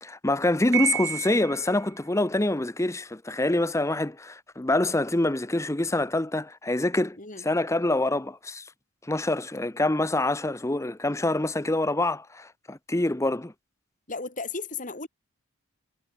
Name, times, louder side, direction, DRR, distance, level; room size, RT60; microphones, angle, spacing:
voice 1, 0.0-8.7 9.1-13.5, left 2 dB, 15° left, 0.8 m, -26 dB
Piano, 0.7-1.9, right 12 dB, 55° right, 1.7 m, -30 dB
voice 2, 14.1-15.1, left 4 dB, 40° left, 4.2 m, -35 dB
head